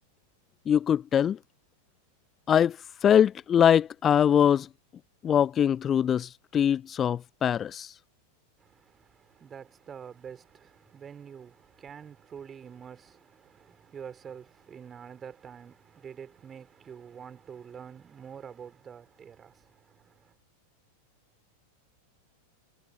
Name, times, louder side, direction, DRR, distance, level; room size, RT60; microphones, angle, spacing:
voice 1, 0.7-1.4 2.5-4.7 5.2-7.9, left 9 dB, 25° left, 0.3 m, -23 dB
voice 2, 8.6-20.3, right 7 dB, 20° right, 4.4 m, -46 dB
figure-of-eight pair, 90°, 0 cm